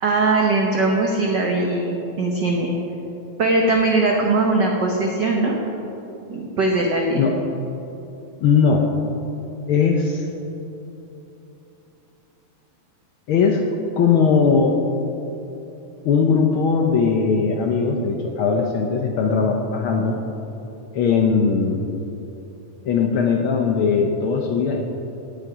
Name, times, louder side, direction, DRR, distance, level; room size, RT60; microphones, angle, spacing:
voice 1, 0.0-2.7 3.4-5.6 6.3-7.3, right 2 dB, 70° right, 0 dB, 1.0 m, -20 dB
voice 2, 8.4-8.9 9.7-10.3 13.3-13.6 14.0-14.8 16.0-20.2 20.9-21.8 22.8-24.8, left 5 dB, 90° left, 2 dB, 1.1 m, -19 dB
17.0 x 9.0 x 4.8 m, 3.0 s
omnidirectional pair, 3.4 m